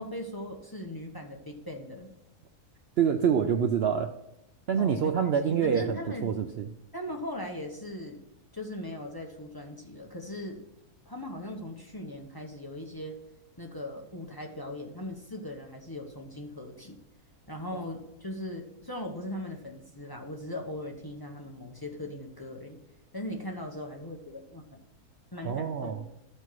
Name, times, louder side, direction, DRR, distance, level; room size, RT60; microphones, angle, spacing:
voice 1, 0.0-2.1 4.8-6.3 6.9-8.2 8.5-10.6 11.1-13.2 13.6-17.0 17.5-22.8 23.1-24.8 25.3-26.1, left 1 dB, 20° left, 1 dB, 0.7 m, -39 dB
voice 2, 3.0-4.1 4.7-6.6 25.4-26.0, right 7 dB, 85° right, 7 dB, 0.5 m, -26 dB
13.0 x 4.4 x 4.6 m, 0.85 s
omnidirectional pair, 1.6 m